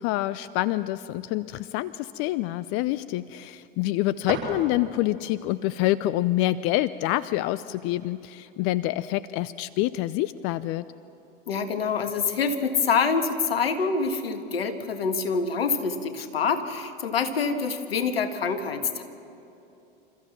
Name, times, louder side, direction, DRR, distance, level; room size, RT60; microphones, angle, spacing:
voice 1, 0.0-10.9, left 15 dB, 45° left, 17 dB, 0.6 m, -27 dB
sound 1, 4.2-5.2, right 2 dB, 90° right, 5.3 m, -36 dB
voice 2, 11.5-19.0, left 5 dB, 80° left, 8 dB, 1.7 m, -26 dB
27.5 x 14.0 x 7.3 m, 2.8 s
hypercardioid pair, 85°, 30 cm